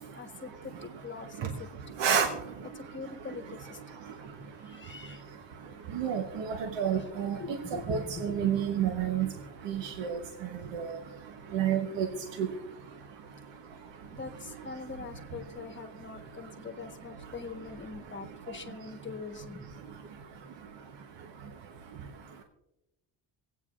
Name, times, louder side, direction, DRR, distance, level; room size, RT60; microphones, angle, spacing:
voice 1, 0.1-1.7 2.7-4.0 4.7-5.2 7.0-7.1 7.4-8.9 14.1-19.6, left 4 dB, 25° left, 1.2 m, -43 dB
voice 2, 5.9-7.6 7.9-9.3 9.7-10.2 10.7-10.8 11.5-12.1 12.4-12.5, right 8 dB, 85° right, 1.1 m, -29 dB
26.0 x 8.8 x 2.4 m
cardioid pair, 125°, 43 cm